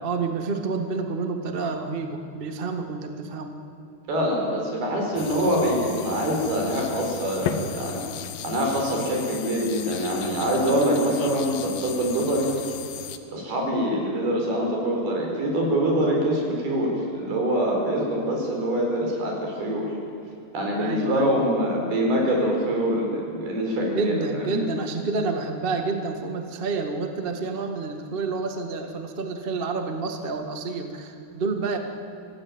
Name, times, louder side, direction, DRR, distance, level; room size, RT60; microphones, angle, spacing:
voice 1, 0.0-3.6 20.8-21.3 23.9-31.8, right 4 dB, 55° right, 5 dB, 0.6 m, -29 dB
voice 2, 4.1-8.0 8.4-12.5 13.3-19.9 20.5-24.1 24.4-24.7, equal, 85° right, 0 dB, 6.7 m, -24 dB
sound 1, 5.2-13.2, left 8 dB, 70° left, 2.7 m, -36 dB
25.5 x 16.5 x 8.8 m, 2.7 s
omnidirectional pair, 4.3 m